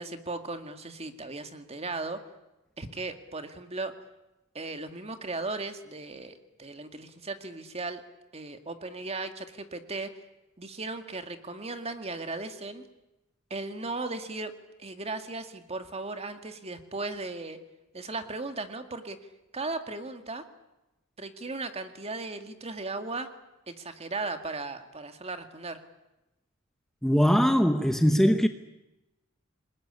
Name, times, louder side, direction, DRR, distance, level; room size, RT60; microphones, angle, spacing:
voice 1, 0.0-2.2 2.8-3.9 4.5-8.0 8.3-10.2 10.6-12.8 13.5-14.5 14.8-17.6 17.9-19.2 19.5-20.4 21.2-23.3 23.7-25.8, right 3 dB, 30° right, 2.1 m, -36 dB
voice 2, 27.0-28.5, equal, ahead, 0.9 m, -21 dB
27.5 x 21.0 x 9.8 m
head